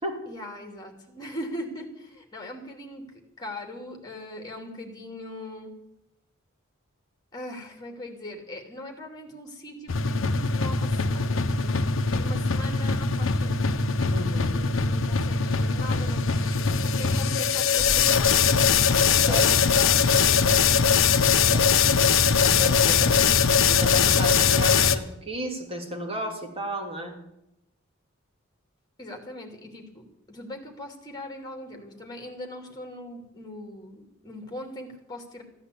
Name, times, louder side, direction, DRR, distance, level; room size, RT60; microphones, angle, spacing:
voice 1, 0.3-3.0 3.4-5.7 7.3-13.8 14.5-18.6 19.2-20.6 29.0-35.4, left 1 dB, 20° left, 3 dB, 2.9 m, -40 dB
sound 1, 9.9-25.0, left 5 dB, 65° left, 0.9 m, -21 dB
voice 2, 14.1-14.7 19.3-19.5 21.4-21.9 22.4-27.2, equal, 25° right, 1 dB, 3.0 m, -34 dB
15.5 x 10.0 x 8.4 m, 0.85 s
head